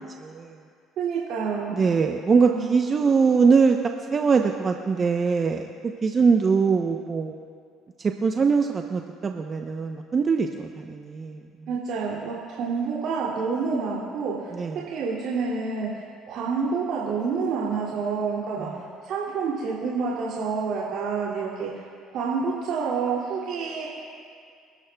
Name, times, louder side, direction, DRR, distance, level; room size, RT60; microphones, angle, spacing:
voice 1, 0.2-0.6 1.7-7.3 8.0-11.7 14.5-14.8 18.6-18.8, right 5 dB, 35° right, 4 dB, 0.7 m, -22 dB
voice 2, 1.0-1.8 2.4-2.6 11.7-14.5 14.9-15.9 16.3-21.8 22.1-23.9, right 5 dB, 70° right, -6 dB, 2.5 m, -28 dB
28.0 x 12.5 x 2.3 m, 2.3 s
supercardioid pair, 85°, 0 cm